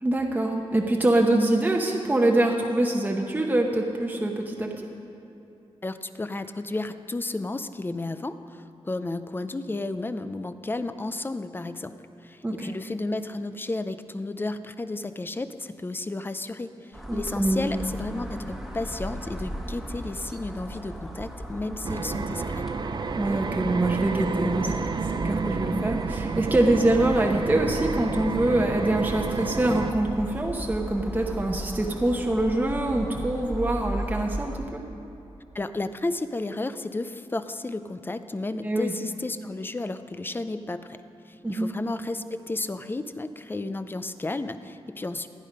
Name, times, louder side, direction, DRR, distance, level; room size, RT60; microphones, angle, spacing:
voice 1, 0.0-4.7 12.4-12.7 17.1-17.7 23.2-24.7 25.2-34.8 38.6-38.9 41.4-41.7, right 1 dB, 15° right, 1 dB, 0.9 m, -24 dB
voice 2, 5.8-11.9 12.2-22.7 35.5-41.0 41.3-45.3, left 2 dB, 20° left, 11 dB, 0.5 m, -32 dB
sound 1, 16.9-34.6, right 1 dB, ahead, 1.3 m, -37 dB
sound 2, 21.8-29.9, right 4 dB, 45° right, 0.5 m, -30 dB
16.5 x 10.5 x 5.2 m, 2.8 s
wide cardioid pair, 135°, 11 cm